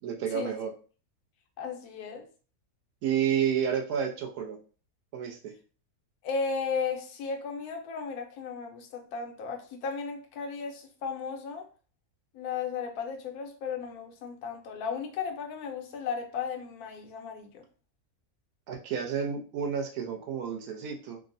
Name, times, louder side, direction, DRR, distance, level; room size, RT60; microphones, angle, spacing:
voice 1, 0.0-0.7 3.0-4.6 5.1-5.5 18.7-21.2, right 8 dB, 80° right, 1.1 m, -30 dB
voice 2, 1.6-2.3 6.2-11.7 12.3-17.6, left 5 dB, 80° left, 1.1 m, -35 dB
3.5 x 2.0 x 2.5 m
omnidirectional pair, 1.6 m